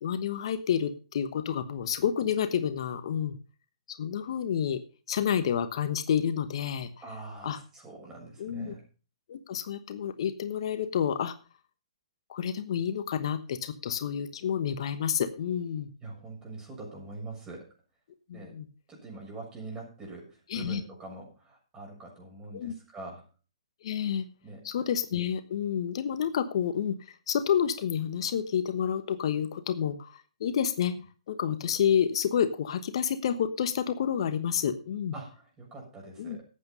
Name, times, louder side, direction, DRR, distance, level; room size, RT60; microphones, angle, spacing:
voice 1, 0.0-3.4 3.9-4.8 5.1-6.9 7.4-7.6 8.4-8.8 9.3-11.3 12.3-15.9 18.3-18.7 20.5-20.8 22.5-22.7 23.8-24.2 24.6-35.1 36.2-36.4, left 8 dB, 60° left, 10 dB, 1.1 m, -29 dB
voice 2, 7.0-8.8 16.0-17.7 18.3-18.5 18.9-23.2 24.4-24.6 35.1-36.4, right 2 dB, 15° right, -1 dB, 6.7 m, -43 dB
13.5 x 8.6 x 5.3 m, 0.35 s
hypercardioid pair, 130°, 3 cm